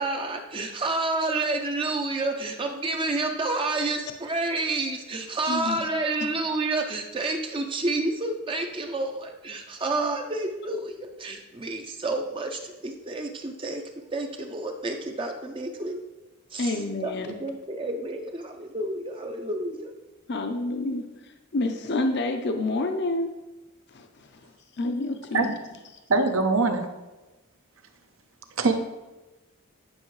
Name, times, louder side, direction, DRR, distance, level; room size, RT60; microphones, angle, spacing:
voice 1, 0.0-13.8 14.1-16.0 16.5-20.0, right 2 dB, 25° right, 4 dB, 0.5 m, -29 dB
voice 2, 5.5-5.8 16.6-17.3 20.3-21.0 21.5-23.3 23.9-24.5 24.8-25.6, left 2 dB, 50° left, 6 dB, 0.5 m, -28 dB
voice 3, 26.1-26.9 28.6-28.7, right 3 dB, 75° right, 6 dB, 0.8 m, -22 dB
9.7 x 5.6 x 3.1 m, 1.1 s
head